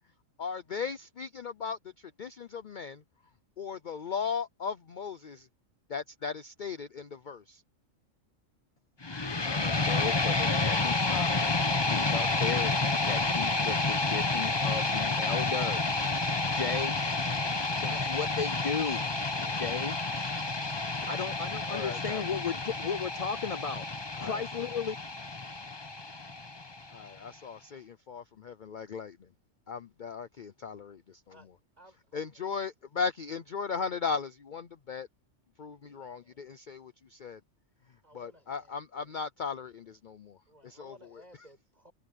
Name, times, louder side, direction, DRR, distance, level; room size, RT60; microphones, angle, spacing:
voice 1, 0.4-3.0 3.6-5.5 5.9-7.6 16.5-16.6 19.4-19.6 20.1-20.2 21.0-21.2 21.7-22.2 24.2-24.4 26.9-29.3 29.7-31.3 32.1-35.1 35.6-37.4 38.1-40.4 40.6-40.9, left 5 dB, 45° left, 0.7 m, -37 dB
sound 1, 9.0-27.0, left 3 dB, 20° left, 0.9 m, -30 dB
voice 2, 9.5-11.4 11.9-15.9 16.5-17.0 17.8-19.1 19.5-20.0 21.1-23.8 24.2-24.9, left 6 dB, 70° left, 0.3 m, -35 dB
voice 3, 31.8-32.6 35.8-36.4 38.0-39.1 40.5-41.9, equal, 30° right, 8.1 m, -59 dB
omnidirectional pair, 1.4 m